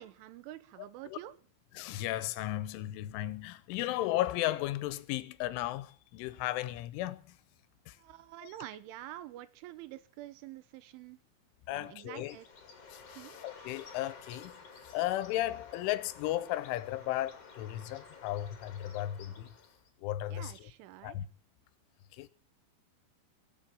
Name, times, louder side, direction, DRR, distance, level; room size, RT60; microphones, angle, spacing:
voice 1, 0.0-1.3 8.0-11.2 11.7-12.5 13.2-13.4 20.3-21.2, right 14 dB, 85° right, 3.3 m, -47 dB
voice 2, 1.7-7.4 7.9-8.0 8.4-8.5 11.7-12.4 12.9-19.5 20.0-20.7 21.0-21.3 22.1-22.3, left 14 dB, 85° left, 3.3 m, -35 dB
Bird, 12.2-19.9, left 5 dB, 40° left, 2.6 m, -53 dB
22.5 x 7.5 x 7.5 m
omnidirectional pair, 5.5 m